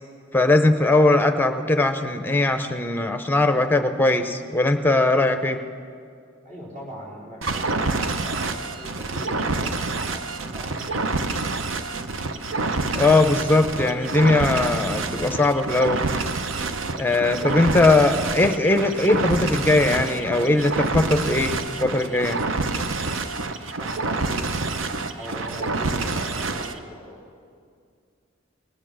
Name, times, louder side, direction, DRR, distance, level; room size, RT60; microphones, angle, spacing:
voice 1, 0.3-5.6 12.9-16.0 16.9-21.5 21.8-22.4, left 2 dB, 10° left, 7 dB, 0.7 m, -20 dB
voice 2, 6.4-10.8 23.7-27.2, equal, 40° right, -5 dB, 3.9 m, -40 dB
sound 1, 7.4-26.8, right 3 dB, 75° right, 0.7 m, -27 dB
19.5 x 9.0 x 6.1 m, 2.2 s
head